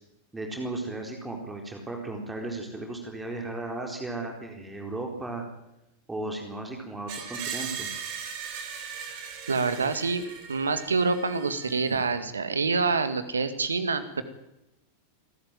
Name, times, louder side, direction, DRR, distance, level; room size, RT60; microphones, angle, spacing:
voice 1, 0.3-5.4 6.1-7.9, right 2 dB, 10° right, 2 dB, 4.3 m, -35 dB
Screech, 7.1-12.0, right 7 dB, 45° right, 4.7 m, -38 dB
voice 2, 9.5-14.2, right 4 dB, 75° right, 11 dB, 2.0 m, -27 dB
27.0 x 13.0 x 9.2 m, 0.93 s
figure-of-eight pair, 90°, 0 cm